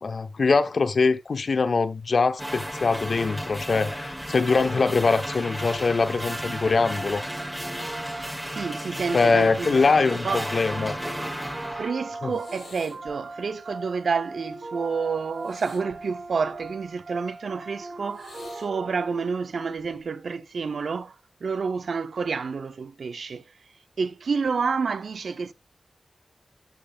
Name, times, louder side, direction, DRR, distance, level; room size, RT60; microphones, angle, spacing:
voice 1, 0.0-7.2 9.1-10.9 12.2-12.3, left 4 dB, 60° left, 0.9 m, -23 dB
sound 1, 2.4-11.9, equal, ahead, 1.5 m, -34 dB
sound 2, 5.6-19.4, right 3 dB, 55° right, 1.8 m, -40 dB
voice 2, 8.5-9.8 10.1-10.4 11.8-21.1 21.4-23.4 24.0-25.5, right 5 dB, 75° right, 0.6 m, -29 dB
sound 3, 12.3-13.2 15.3-16.9 18.1-18.7 19.8-20.1, left 3 dB, 85° left, 5.7 m, -48 dB
13.0 x 5.6 x 2.4 m
wide cardioid pair, 125°, 0 cm